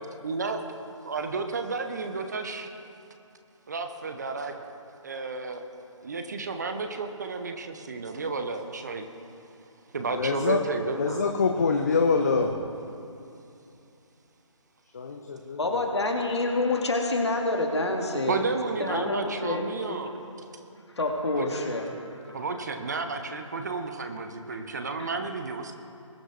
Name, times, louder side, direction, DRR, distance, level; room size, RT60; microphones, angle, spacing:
voice 1, 0.2-0.6 1.1-2.7 3.7-4.5 5.0-5.6 6.0-9.1 9.9-11.3 18.3-20.2 21.3-21.5 22.3-25.7, right 4 dB, 35° right, 7 dB, 0.8 m, -32 dB
voice 2, 10.1-10.6 10.9-12.6 14.9-15.6, left 4 dB, 30° left, 3 dB, 0.6 m, -25 dB
voice 3, 15.6-18.5 18.8-20.0 21.0-22.4 25.0-25.1, left 2 dB, 55° left, 2 dB, 1.9 m, -28 dB
21.0 x 9.8 x 3.2 m, 2.7 s
figure-of-eight pair, 150°, 17 cm